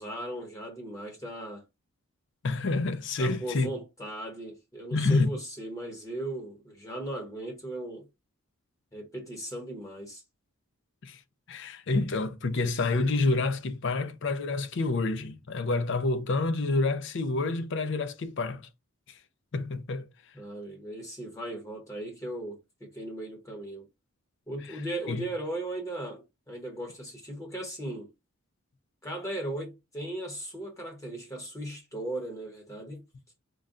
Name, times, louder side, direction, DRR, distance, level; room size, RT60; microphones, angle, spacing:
voice 1, 0.0-1.6 3.2-8.0 8.9-10.2 20.3-23.9 24.5-28.1 29.0-33.0, right 1 dB, 15° left, 0.9 m, -37 dB
voice 2, 2.4-3.7 4.9-5.3 11.0-11.2 11.5-18.7 19.1-19.2 19.5-20.1 24.6-24.8 25.1-25.2, left 3 dB, 55° left, 0.5 m, -28 dB
3.9 x 2.1 x 3.6 m
head